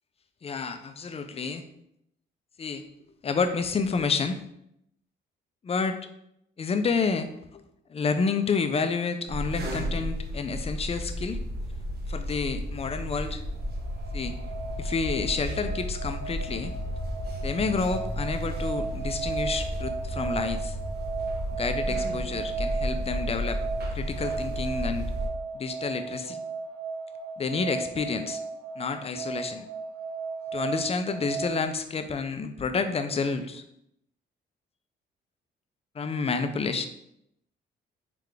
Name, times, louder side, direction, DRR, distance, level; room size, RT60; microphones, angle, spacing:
voice 1, 0.4-1.6 2.6-2.8 3.2-4.4 5.6-6.0 6.6-7.6 7.9-11.4 12.1-13.4 14.1-14.3 14.8-16.7 17.4-20.8 21.6-23.6 23.9-25.1 25.5-26.4 27.4-28.4 28.8-29.6 30.5-33.6 35.9-36.9, left 4 dB, 30° left, 8 dB, 0.5 m, -29 dB
sound 1, 9.3-25.3, equal, 55° right, 0.9 m, -33 dB
sound 2, 13.5-31.6, right 5 dB, 80° right, 0.6 m, -36 dB
3.7 x 3.3 x 3.3 m, 0.77 s
cardioid pair, 90°, 20 cm